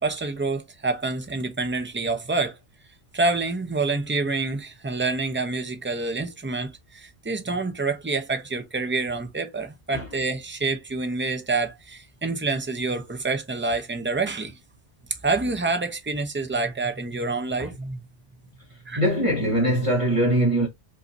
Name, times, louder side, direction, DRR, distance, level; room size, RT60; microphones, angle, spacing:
voice 1, 0.0-2.6 3.1-14.5 15.2-18.0 18.9-19.0, right 3 dB, 10° right, 0.6 m, -27 dB
voice 2, 18.7-20.7, right 1 dB, 30° right, 1.4 m, -22 dB
5.5 x 2.8 x 2.7 m
omnidirectional pair, 1.2 m